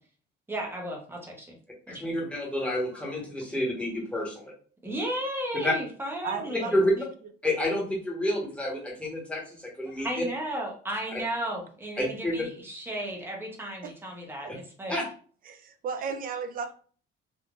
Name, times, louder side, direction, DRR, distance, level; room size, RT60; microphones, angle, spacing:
voice 1, 0.5-1.5 1.9-2.1 4.8-7.1 9.8-14.9, right 1 dB, 10° right, -1 dB, 0.8 m, -34 dB
voice 2, 1.9-4.5 5.6-5.7 6.7-6.9 7.4-10.2 12.0-12.4 14.9-15.0, left 1 dB, 5° left, -4 dB, 1.1 m, -29 dB
voice 3, 6.2-7.1 13.8-13.9 14.4-14.5 15.4-16.7, right 6 dB, 45° right, 7 dB, 0.5 m, -35 dB
3.7 x 2.5 x 2.4 m, 0.42 s
cardioid pair, 150°, 21 cm